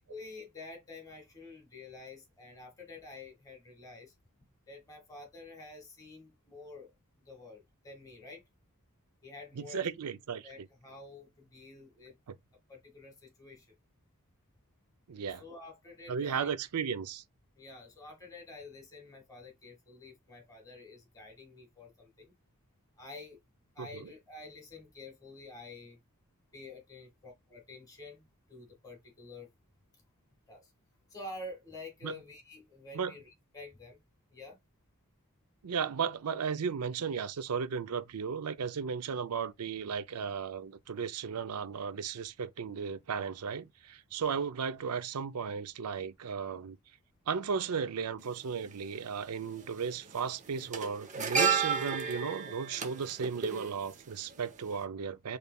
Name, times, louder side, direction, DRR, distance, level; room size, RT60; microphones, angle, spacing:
voice 1, 0.0-4.1 4.7-6.9 7.2-8.4 9.2-9.8 10.4-12.1 12.7-13.7 15.4-16.5 17.6-22.3 23.0-23.4 23.7-26.0 26.5-29.5 30.5-30.7 31.1-34.0 34.3-34.6 44.3-44.5, left 2 dB, 15° left, 1.9 m, -49 dB
voice 2, 9.6-10.5 12.3-12.4 15.1-15.4 16.1-17.2 23.8-24.1 32.0-32.1 32.9-33.1 35.6-46.8 47.3-55.4, right 6 dB, 85° right, 0.5 m, -35 dB
sound 1, 48.2-48.3 49.5-49.8 50.1-54.4 54.7-54.8, right 6 dB, 35° right, 0.8 m, -32 dB
5.2 x 3.2 x 2.3 m
head